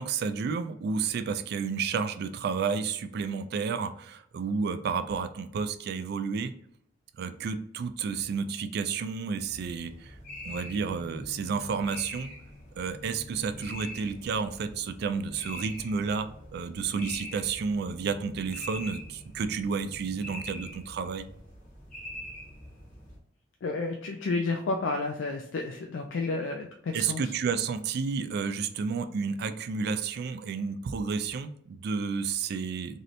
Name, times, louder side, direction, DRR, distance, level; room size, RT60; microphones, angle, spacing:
voice 1, 0.0-6.5 7.2-10.2 10.4-12.3 12.8-21.3 26.9-33.0, right 5 dB, 55° right, 10 dB, 0.3 m, -31 dB
sound 1, 9.4-23.2, left 1 dB, 45° left, 1.1 m, -44 dB
voice 2, 23.6-27.3, left 3 dB, 70° left, 3 dB, 0.4 m, -31 dB
3.1 x 2.7 x 2.5 m, 0.69 s
head